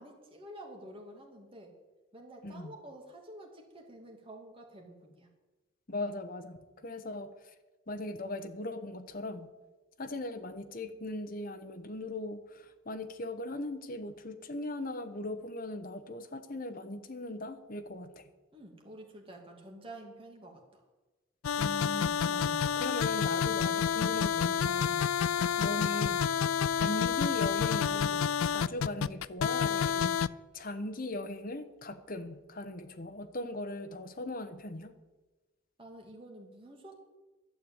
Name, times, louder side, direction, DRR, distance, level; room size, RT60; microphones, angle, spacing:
voice 1, 0.0-1.8 2.1-5.3 18.5-20.8 25.4-25.5 35.8-37.0, right 1 dB, 25° right, 1 dB, 2.5 m, -49 dB
voice 2, 2.4-2.8 5.9-7.5 7.9-9.5 10.0-18.3 21.6-25.1 25.6-26.3 26.7-30.2 30.5-34.9, left 2 dB, 40° left, 9 dB, 1.1 m, -39 dB
sound 1, 21.4-30.3, left 8 dB, 85° left, 0.4 m, -29 dB
12.0 x 8.0 x 8.8 m, 1.2 s
head